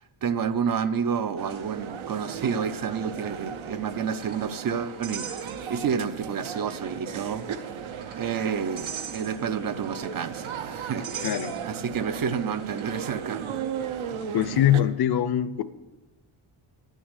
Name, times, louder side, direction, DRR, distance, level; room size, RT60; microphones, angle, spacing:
voice 1, 0.0-7.8 8.2-14.6, right 7 dB, 45° right, 0.5 m, -30 dB
sound 1, 1.4-14.8, right 7 dB, 75° right, 0.8 m, -36 dB
sound 2, 3.4-6.0 6.3-6.4 7.3-13.2, right 6 dB, 90° right, 2.7 m, -42 dB
voice 2, 11.2-11.6 14.3-15.6, left 11 dB, 50° left, 0.6 m, -23 dB
12.0 x 6.4 x 8.1 m
wide cardioid pair, 180°, 49 cm